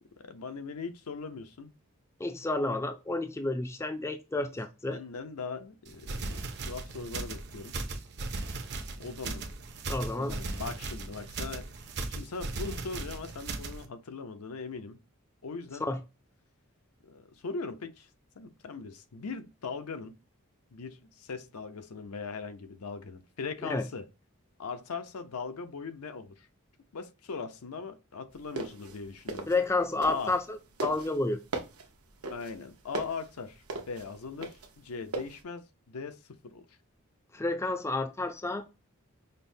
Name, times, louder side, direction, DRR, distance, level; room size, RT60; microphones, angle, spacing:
voice 1, 0.2-1.7 4.9-7.8 9.0-9.5 10.1-11.7 12.2-15.0 15.4-15.9 17.0-18.1 18.4-20.1 20.7-24.0 24.6-26.5 26.9-29.5 30.1-30.3 32.3-36.7, left 4 dB, 85° left, 0.6 m, -40 dB
voice 2, 2.2-5.0 9.9-10.4 15.8-16.0 23.6-23.8 29.5-31.4 37.3-38.6, left 2 dB, 10° left, 0.3 m, -30 dB
sound 1, 5.9-13.8, right 3 dB, 50° right, 0.6 m, -38 dB
sound 2, 28.4-30.5 30.8-35.4, right 2 dB, 80° right, 0.8 m, -38 dB
5.3 x 2.1 x 2.6 m
head